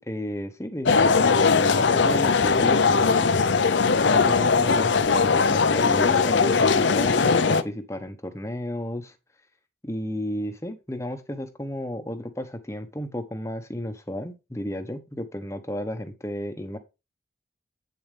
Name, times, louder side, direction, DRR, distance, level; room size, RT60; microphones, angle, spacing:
voice 1, 0.1-3.3 4.1-9.1 9.8-16.8, left 1 dB, 15° left, 7 dB, 1.0 m, -33 dB
sound 1, 0.9-7.6, left 5 dB, 75° left, 0.7 m, -20 dB
8.6 x 7.2 x 3.4 m, 0.26 s
head